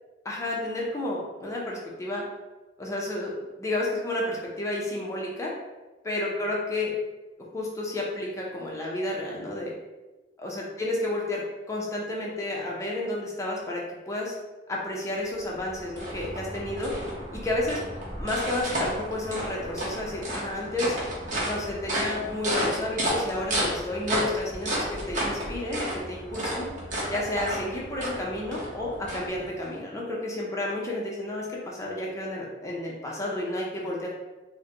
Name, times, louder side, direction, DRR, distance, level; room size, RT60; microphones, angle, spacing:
voice 1, 0.2-2.2 2.8-3.3 3.6-5.5 6.0-6.9 7.5-9.7 10.4-11.4 11.7-14.3 14.7-16.9 17.3-17.8 18.2-20.9 21.4-26.7 27.1-34.1, left 1 dB, 15° left, -4 dB, 0.6 m, -31 dB
sound 1, 15.3-29.7, right 1 dB, 45° right, 0.9 m, -32 dB
3.8 x 2.1 x 2.8 m, 1.1 s
head